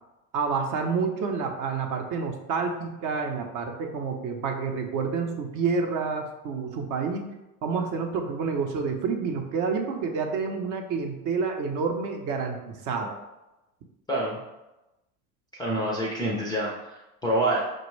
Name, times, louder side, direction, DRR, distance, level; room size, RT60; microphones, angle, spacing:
voice 1, 0.3-7.3 7.6-13.2, right 5 dB, 40° right, 4 dB, 0.6 m, -29 dB
voice 2, 15.5-17.6, right 1 dB, 10° left, -3 dB, 0.4 m, -27 dB
5.1 x 2.2 x 3.1 m, 0.99 s
supercardioid pair, 105°, 46 cm